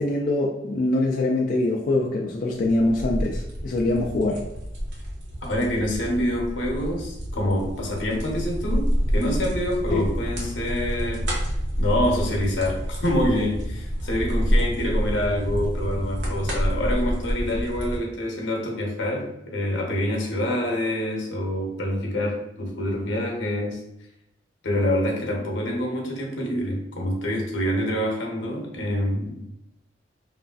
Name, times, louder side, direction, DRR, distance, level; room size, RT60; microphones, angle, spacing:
voice 1, 0.0-4.4 9.9-10.1, left 2 dB, 50° left, -1 dB, 0.3 m, -23 dB
sound 1, 2.6-18.0, equal, 75° right, 0.8 m, -28 dB
voice 2, 5.4-11.3 11.8-23.8 24.6-29.4, left 1 dB, 85° left, 0 dB, 0.7 m, -26 dB
3.0 x 2.5 x 2.3 m, 0.82 s
head